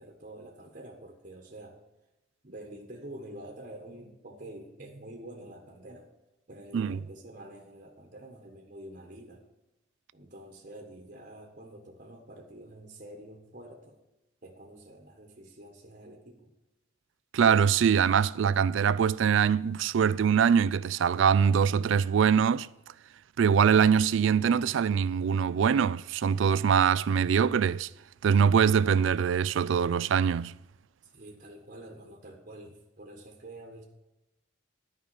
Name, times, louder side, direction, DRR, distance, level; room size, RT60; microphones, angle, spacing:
voice 1, 0.0-1.8 2.4-6.1 6.5-9.4 10.1-14.0 14.4-16.5 31.1-33.8, right 1 dB, 40° right, 1.3 m, -47 dB
voice 2, 17.3-22.7 23.4-27.9 28.2-30.5, right 7 dB, 65° right, 0.3 m, -23 dB
10.5 x 5.3 x 8.4 m
head